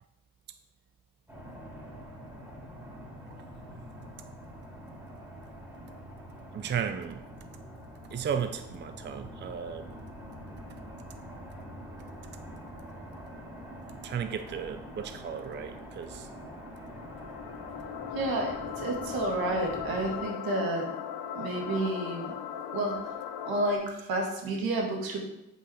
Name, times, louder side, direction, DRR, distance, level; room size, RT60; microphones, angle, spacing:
sound 1, 1.3-20.3, equal, 5° right, 3.1 m, -45 dB
voice 1, 6.5-7.2 8.1-9.9 14.0-16.3 21.8-21.9, right 7 dB, 30° right, 8 dB, 0.5 m, -34 dB
sound 2, 16.3-23.8, left 9 dB, 90° left, 0.7 m, -38 dB
voice 2, 18.1-20.9 21.4-22.3 22.7-23.0 23.5-25.2, right 2 dB, 75° right, 0 dB, 2.0 m, -30 dB
8.0 x 5.0 x 4.3 m, 0.90 s
cardioid pair, 85°, 36 cm